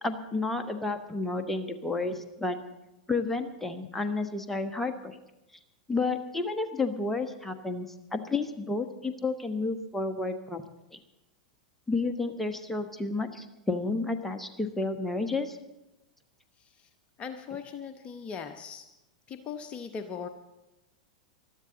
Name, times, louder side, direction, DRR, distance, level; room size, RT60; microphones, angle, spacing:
voice 1, 0.0-2.6 3.1-5.2 5.9-10.6 10.9-11.0 11.9-15.6, left 3 dB, 5° left, 5 dB, 1.3 m, -31 dB
voice 2, 17.2-18.9 19.3-20.3, left 6 dB, 30° left, 7 dB, 0.9 m, -39 dB
20.5 x 13.0 x 4.0 m, 0.95 s
hypercardioid pair, 100°, 4 cm